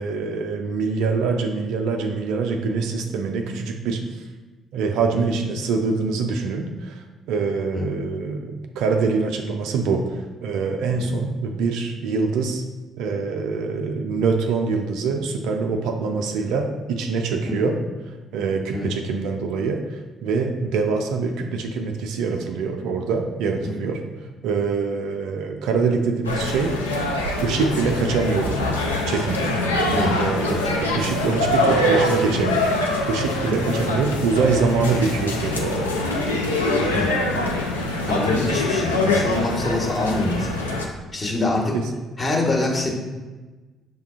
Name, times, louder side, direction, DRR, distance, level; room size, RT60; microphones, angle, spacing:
voice 1, 0.0-4.0 4.7-12.6 13.0-24.0 24.4-26.8 27.4-28.6 29.1-29.6 30.1-32.8 33.1-35.9 41.7-41.9, right 4 dB, 65° right, 4 dB, 0.3 m, -24 dB
sound 1, 26.2-40.9, left 1 dB, 90° left, 0.3 m, -24 dB
voice 2, 30.5-31.0 33.4-33.7 36.9-37.1 38.1-40.5 41.1-41.7 42.2-42.9, left 2 dB, 35° left, -3 dB, 1.1 m, -25 dB
6.5 x 2.2 x 2.4 m, 1.2 s
figure-of-eight pair, 45°, 0 cm